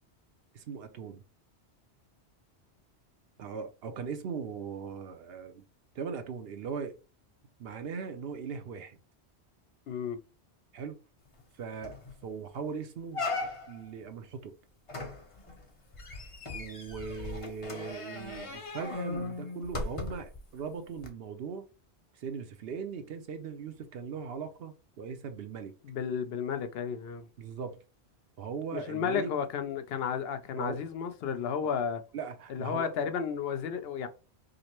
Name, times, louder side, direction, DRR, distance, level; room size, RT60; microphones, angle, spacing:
voice 1, 0.5-1.2 3.4-5.6 5.9-7.0 7.6-9.0 10.7-11.0 11.6-11.9 12.2-13.3 13.7-14.5 16.5-21.6 22.1-25.7 27.4-27.8 28.4-29.3 30.5-30.7 31.6-31.7 32.1-32.9, right 6 dB, 65° right, 0.8 m, -39 dB
voice 2, 9.9-10.2 25.8-27.3 28.7-32.0 32.5-34.1, left 7 dB, 65° left, 0.8 m, -33 dB
sound 1, 11.4-11.5 11.8-12.1 12.5-12.6 13.1-13.9 14.9-20.4 21.0-21.1, left 3 dB, 35° left, 0.8 m, -38 dB
5.0 x 2.0 x 2.9 m
omnidirectional pair, 1.1 m